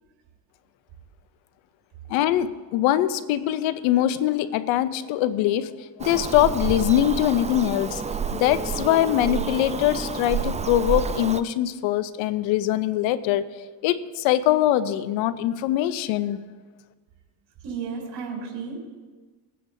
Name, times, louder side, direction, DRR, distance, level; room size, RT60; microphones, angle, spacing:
voice 1, 2.1-8.0 8.3-13.5 13.8-16.4, left 12 dB, 85° left, 0.8 m, -23 dB
Bird vocalization bird call bird song, 6.0-11.4, right 6 dB, 15° right, 0.5 m, -29 dB
voice 2, 17.6-18.8, right 5 dB, 70° right, 4.1 m, -33 dB
21.0 x 9.5 x 2.7 m
supercardioid pair, 80°, 45 cm